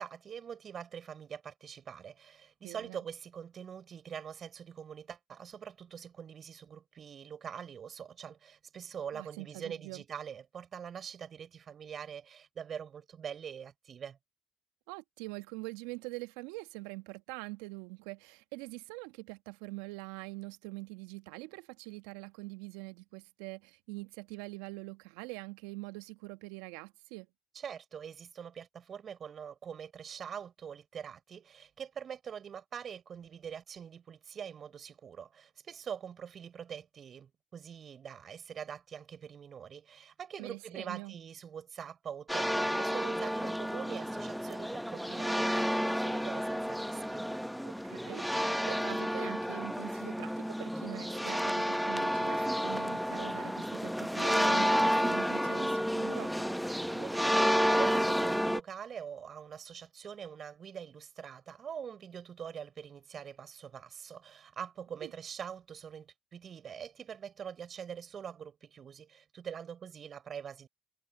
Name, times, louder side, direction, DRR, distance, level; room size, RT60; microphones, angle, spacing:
voice 1, 0.0-14.2 27.5-47.2 56.9-70.7, right 8 dB, 50° right, 5.8 m, -44 dB
voice 2, 2.6-3.0 9.1-10.0 14.9-27.3 40.4-41.2 47.6-56.3 65.0-65.1, right 24 dB, 75° right, 1.7 m, -44 dB
sound 1, 42.3-58.6, equal, ahead, 0.9 m, -31 dB
hypercardioid pair, 50°, 0 cm